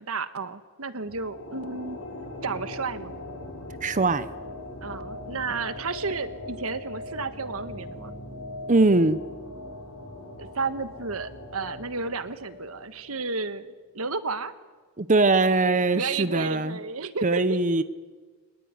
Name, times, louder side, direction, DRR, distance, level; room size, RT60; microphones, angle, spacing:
voice 1, 0.0-2.0 2.4-3.1 4.8-8.1 10.4-14.5 15.9-17.6, right 4 dB, 90° right, 12 dB, 1.4 m, -32 dB
sound 1, 1.0-13.6, left 2 dB, 80° left, 6.5 m, -40 dB
voice 2, 3.8-4.3 8.7-9.2 15.0-16.8 17.2-17.8, right 3 dB, 35° right, 13 dB, 0.9 m, -21 dB
24.0 x 19.5 x 9.7 m, 1.4 s
head